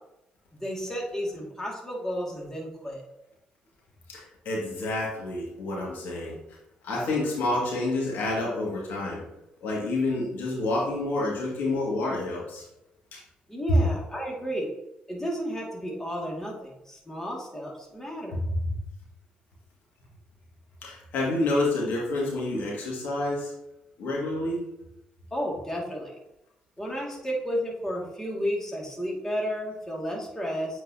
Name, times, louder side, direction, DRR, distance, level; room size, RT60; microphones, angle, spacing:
voice 1, 0.5-3.0 13.5-14.7 15.1-18.4 25.3-26.2 26.8-30.8, equal, 15° left, -2 dB, 2.3 m, -32 dB
voice 2, 4.1-6.4 6.8-9.2 9.6-12.6 13.1-13.2 18.4-18.5 20.8-23.5 24.0-24.6, left 2 dB, 80° left, -4 dB, 2.1 m, -28 dB
8.3 x 4.5 x 2.9 m, 0.87 s
supercardioid pair, 65°, 3 cm